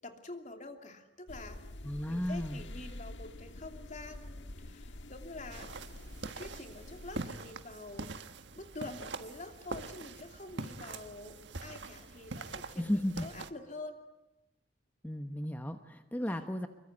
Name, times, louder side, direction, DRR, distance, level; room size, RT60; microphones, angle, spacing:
voice 1, 0.0-1.6 2.1-5.7 6.4-14.0 16.1-16.5, left 2 dB, 40° left, 5 dB, 2.8 m, -47 dB
sound 1, 1.3-7.3, left 1 dB, 75° left, 1.5 m, -47 dB
voice 2, 1.8-2.6 12.8-13.3 15.0-16.7, left 1 dB, 10° left, 7 dB, 1.1 m, -34 dB
sound 2, 5.5-13.5, right 3 dB, 70° right, 1.5 m, -44 dB
26.0 x 23.5 x 9.6 m, 0.95 s
head